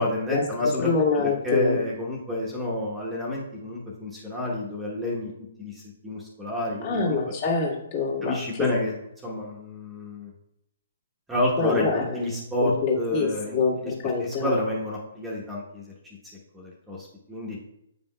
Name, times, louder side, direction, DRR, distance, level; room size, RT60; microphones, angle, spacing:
voice 1, 0.0-5.3 5.6-7.2 8.2-9.0 9.2-10.3 11.3-11.9 12.1-13.6 13.8-13.9 14.2-15.8 16.5-17.6, left 1 dB, 5° right, -5 dB, 1.1 m, -29 dB
voice 2, 0.8-1.8 6.8-8.7 11.6-14.6, left 4 dB, 40° left, -3 dB, 1.8 m, -26 dB
8.7 x 5.3 x 2.3 m, 0.80 s
figure-of-eight pair, 125°, 0 cm